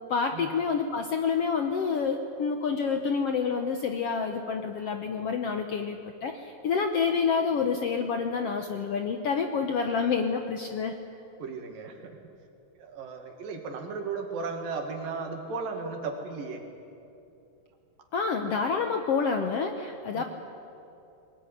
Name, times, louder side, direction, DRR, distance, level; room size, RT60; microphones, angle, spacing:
voice 1, 0.1-10.9 18.1-20.2, left 5 dB, 65° left, 6 dB, 1.5 m, -28 dB
voice 2, 11.4-12.2 12.8-16.6 20.1-20.2, right 4 dB, 80° right, 4 dB, 3.8 m, -35 dB
21.5 x 19.0 x 9.9 m, 2.7 s
omnidirectional pair, 3.9 m